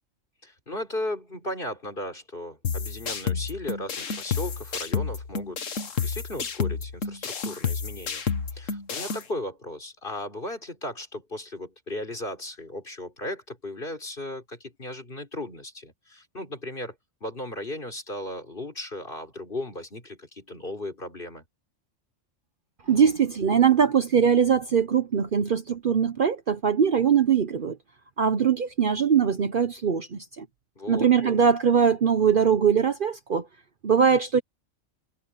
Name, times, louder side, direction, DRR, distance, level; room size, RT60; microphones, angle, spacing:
voice 1, 0.4-8.3 8.5-17.0 17.2-21.5 30.8-31.3, left 1 dB, 45° left, 4.5 m, -36 dB
sound 1, 2.6-9.2, left 6 dB, 80° left, 1.7 m, -30 dB
voice 2, 22.9-27.8 28.2-30.5 30.9-33.5 33.8-34.4, right 7 dB, 50° right, 0.9 m, -21 dB
omnidirectional pair, 1.3 m